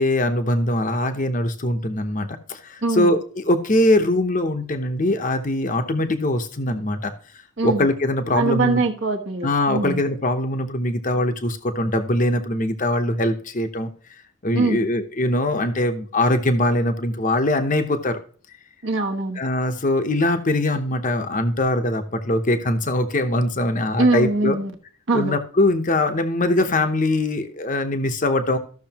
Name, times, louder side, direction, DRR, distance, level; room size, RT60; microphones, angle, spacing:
voice 1, 0.0-7.1 7.6-8.8 9.4-13.9 14.4-18.2 19.4-24.6 25.1-28.6, left 1 dB, 35° left, 7 dB, 0.9 m, -22 dB
voice 2, 2.8-3.1 7.6-7.9 8.3-10.0 14.5-14.8 18.8-19.4 24.0-24.7 25.1-25.3, right 3 dB, 55° right, 4 dB, 1.2 m, -22 dB
14.0 x 6.4 x 2.9 m, 0.43 s
head